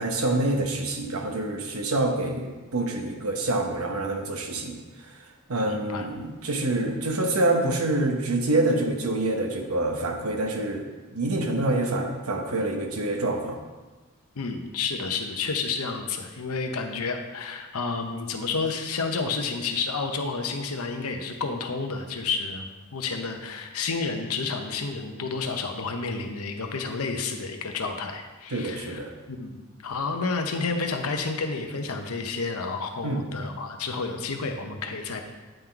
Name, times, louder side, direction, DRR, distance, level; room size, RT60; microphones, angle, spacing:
voice 1, 0.0-4.8 5.5-10.8 11.1-13.6 28.5-29.1 33.0-33.2, right 2 dB, 85° right, 3 dB, 1.0 m, -26 dB
voice 2, 5.6-6.1 11.3-11.4 14.4-29.0 29.3-35.2, left 4 dB, 90° left, 5 dB, 0.8 m, -30 dB
9.1 x 3.8 x 4.5 m, 1.3 s
head